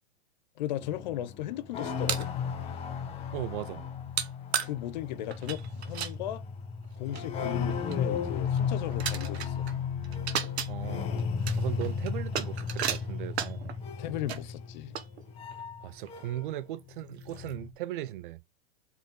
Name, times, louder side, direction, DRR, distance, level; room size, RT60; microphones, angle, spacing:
voice 1, 0.6-2.3 4.6-6.4 7.0-9.7 14.0-15.0, left 13 dB, 45° left, 0.7 m, -36 dB
sound 1, 0.8-16.6 16.9-17.7, left 6 dB, 20° left, 1.3 m, -34 dB
sound 2, 1.8-2.3 4.2-4.3 4.5-4.7 5.3-6.1 6.8-6.9 7.1-7.3 7.7-8.0 8.5-8.6 8.9-9.7 10.0-10.7 11.2-13.7 14.3-14.4 14.9-15.6 16.1-16.2 16.8-16.9 17.2-17.5, right 9 dB, 80° right, 1.4 m, -34 dB
voice 2, 3.3-3.8 10.7-11.1 11.6-13.7 15.8-18.4, right 13 dB, 55° right, 0.7 m, -37 dB
8.1 x 4.7 x 3.8 m
supercardioid pair, 160°, 31 cm